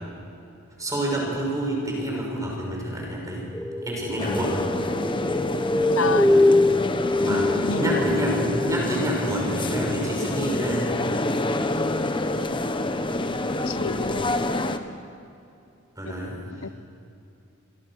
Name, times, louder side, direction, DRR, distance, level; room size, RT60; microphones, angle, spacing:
voice 1, 0.8-3.5 3.8-4.7 6.3-6.5 7.2-7.5 7.8-11.0 16.0-16.4, right 1 dB, 15° right, -2 dB, 6.2 m, -28 dB
sound 1, 3.5-8.8, left 2 dB, 5° left, 0.8 m, -23 dB
sound 2, 4.2-14.8, left 2 dB, 25° left, 1.1 m, -27 dB
voice 2, 6.0-6.4 7.3-8.0 13.6-14.3 16.5-16.7, left 4 dB, 70° left, 14 dB, 0.8 m, -30 dB
28.0 x 23.5 x 6.5 m, 2.6 s
head